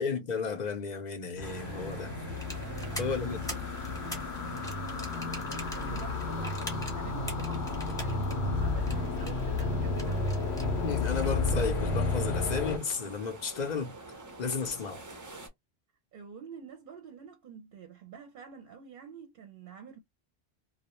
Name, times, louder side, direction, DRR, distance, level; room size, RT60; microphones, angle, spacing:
voice 1, 0.0-2.1 3.0-3.6 10.8-14.0 14.4-15.0, left 5 dB, 50° left, 0.6 m, -33 dB
sound 1, 1.4-12.8, left 3 dB, 80° left, 0.9 m, -32 dB
sound 2, 1.4-15.5, right 2 dB, 25° right, 0.4 m, -47 dB
sound 3, 2.3-11.5, equal, 5° left, 0.8 m, -45 dB
voice 2, 2.6-3.1 5.1-10.4 16.1-20.0, right 6 dB, 55° right, 0.7 m, -48 dB
2.3 x 2.0 x 2.8 m
omnidirectional pair, 1.1 m